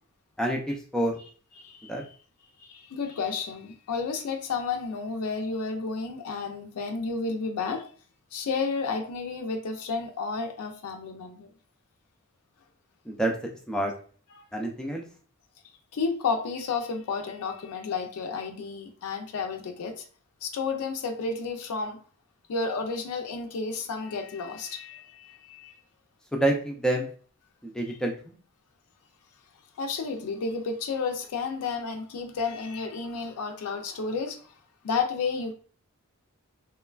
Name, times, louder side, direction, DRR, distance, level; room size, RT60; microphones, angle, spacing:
voice 1, 0.4-1.1 1.9-2.0 13.1-13.3 13.7-13.9 14.5-15.0 26.3-27.1 27.6-28.1, right 1 dB, 5° left, 1 dB, 0.3 m, -27 dB
voice 2, 1.6-2.1 2.6-7.9 8.3-11.5 14.4-14.5 15.9-20.0 20.4-22.0 22.5-25.8 27.9-28.0 29.8-34.5 34.8-35.5, left 4 dB, 85° left, 4 dB, 0.4 m, -31 dB
3.0 x 2.2 x 2.3 m, 0.42 s
head